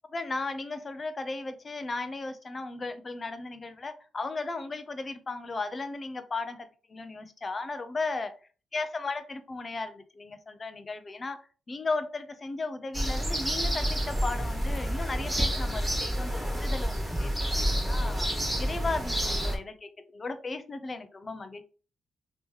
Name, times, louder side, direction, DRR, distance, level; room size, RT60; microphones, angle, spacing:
voice 1, 0.1-8.3 8.7-11.4 11.7-17.3 17.6-18.3 18.6-21.6, left 3 dB, 30° left, 0.6 m, -36 dB
sound 1, 12.9-19.6, equal, 5° right, 1.5 m, -29 dB
3.0 x 3.0 x 3.5 m
cardioid pair, 90°, 0 cm